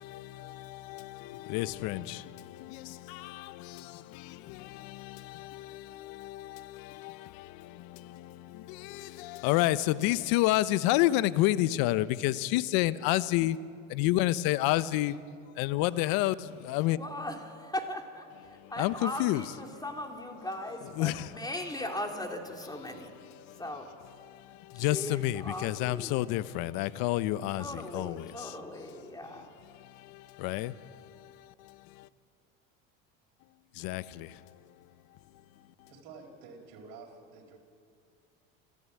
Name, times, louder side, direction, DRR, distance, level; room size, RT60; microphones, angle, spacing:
voice 1, 0.0-13.6 13.9-15.2 15.5-17.0 18.5-19.4 21.0-21.3 23.2-23.6 24.2-28.6 29.0-29.1 29.4-32.1 33.7-34.6, left 16 dB, 65° left, 1.0 m, -31 dB
voice 2, 16.8-18.3 18.7-23.1 23.6-23.9 24.7-26.2 27.6-29.5, left 1 dB, 10° left, 3.3 m, -38 dB
voice 3, 35.9-37.6, right 4 dB, 65° right, 5.0 m, -49 dB
27.5 x 15.0 x 8.6 m
supercardioid pair, 95°, 38 cm